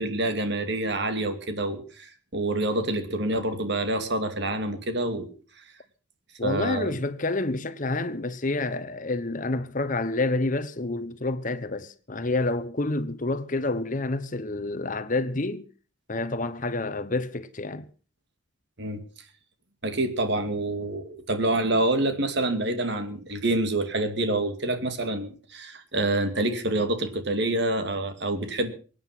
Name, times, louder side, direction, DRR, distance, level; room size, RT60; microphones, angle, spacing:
voice 1, 0.0-5.3 6.4-6.9 18.8-19.0 19.8-28.7, right 2 dB, 55° right, 2.5 m, -27 dB
voice 2, 6.4-15.6 16.1-17.9, left 2 dB, 40° left, 1.0 m, -28 dB
24.0 x 9.5 x 5.9 m
head